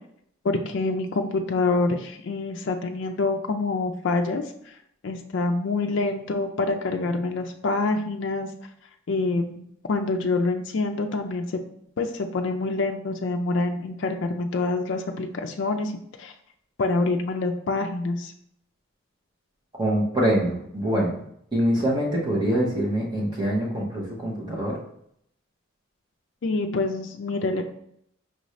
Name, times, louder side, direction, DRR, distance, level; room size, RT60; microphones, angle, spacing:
voice 1, 0.4-4.8 5.0-8.5 9.1-11.6 12.0-15.9 16.2-16.3 16.8-18.3 26.4-27.7, left 3 dB, 55° left, 4 dB, 0.4 m, -26 dB
voice 2, 19.8-21.2 21.5-24.8, right 1 dB, 20° right, -3 dB, 0.8 m, -24 dB
5.3 x 2.6 x 3.1 m, 0.71 s
head